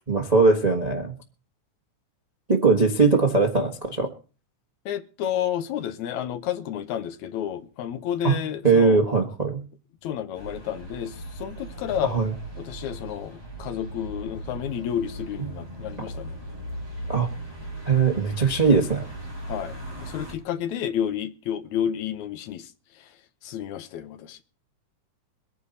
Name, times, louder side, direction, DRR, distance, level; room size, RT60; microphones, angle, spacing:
voice 1, 0.1-1.1 2.5-4.1 8.2-8.4 8.6-9.6 12.1-12.3 17.1-17.3 17.9-19.0, right 4 dB, 45° right, 0.5 m, -20 dB
voice 2, 4.9-9.0 10.0-12.1 12.6-16.4 19.5-22.7 23.4-24.4, left 10 dB, 75° left, 2.1 m, -30 dB
sound 1, 10.3-20.3, right 1 dB, 5° right, 5.1 m, -38 dB
23.5 x 9.6 x 4.1 m
omnidirectional pair, 3.6 m